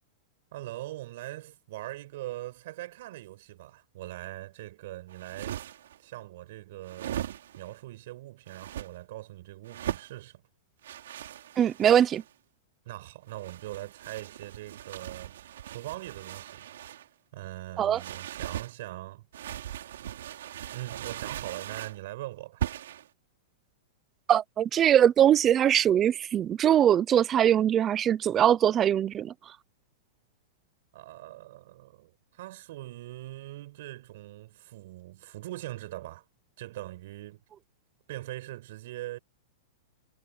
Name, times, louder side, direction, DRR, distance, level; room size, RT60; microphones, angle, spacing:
voice 1, 0.5-5.6 6.0-7.3 7.6-10.4 12.8-16.7 17.3-19.2 20.7-22.6 30.9-36.2 36.6-37.4 38.1-39.2, right 16 dB, 55° right, 6.7 m, -41 dB
sound 1, 5.1-6.0 6.8-7.7 8.5-8.9 9.7-10.1 10.8-12.3 13.3-17.1 17.9-18.7 19.3-22.0 22.6-23.1, right 11 dB, 75° right, 3.9 m, -39 dB
voice 2, 11.6-12.2 17.8-18.0 24.3-29.3, right 10 dB, 20° right, 0.6 m, -22 dB
supercardioid pair, 165°, 0 cm